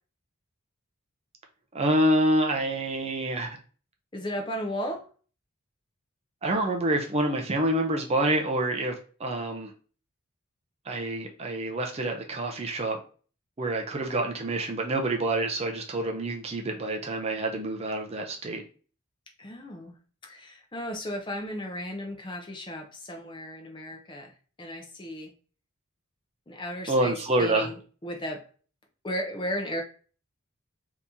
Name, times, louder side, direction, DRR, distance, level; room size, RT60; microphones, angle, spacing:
voice 1, 1.7-3.6 6.4-8.9 9.2-9.7 10.9-13.0 13.6-18.6 26.9-27.7, right 1 dB, 30° right, 2 dB, 0.5 m, -27 dB
voice 2, 4.1-5.1 19.4-19.9 20.2-24.3 24.6-25.3 26.5-27.7 28.0-28.4 29.0-29.8, equal, 20° left, 2 dB, 0.5 m, -35 dB
2.9 x 2.7 x 3.4 m, 0.39 s
head